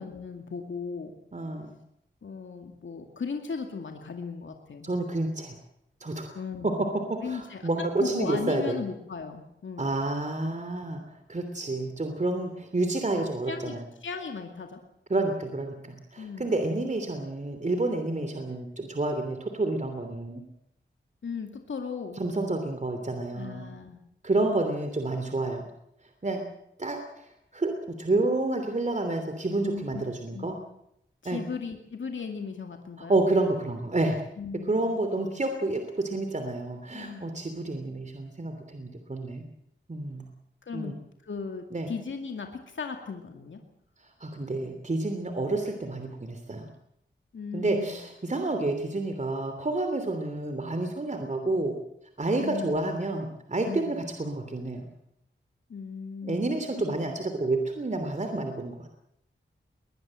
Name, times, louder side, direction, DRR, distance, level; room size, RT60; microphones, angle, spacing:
voice 1, 0.0-1.2 2.2-4.9 6.3-6.7 7.2-7.7 8.0-10.0 13.1-14.8 16.2-16.6 18.3-18.4 21.2-22.2 23.3-24.0 29.6-30.7 31.2-33.2 34.4-34.8 36.9-37.4 40.6-40.9 41.2-43.6 47.3-48.0 52.4-52.9 53.6-54.0 55.7-56.5 56.8-57.0, left 5 dB, 80° left, 4 dB, 2.3 m, -37 dB
voice 2, 1.3-1.7 4.8-5.6 6.0-6.3 6.6-6.7 7.1-8.8 9.8-11.0 11.3-13.8 15.1-20.4 22.2-23.6 24.2-25.6 26.2-26.4 26.8-27.0 27.5-30.5 31.2-31.4 33.0-34.2 34.7-39.4 39.9-40.2 40.7-40.9 41.7-41.9 44.2-46.7 47.5-51.7 52.2-54.8 56.2-58.9, right 2 dB, 40° right, 6 dB, 3.0 m, -29 dB
21.5 x 21.0 x 7.7 m, 0.77 s
wide cardioid pair, 85°, 19 cm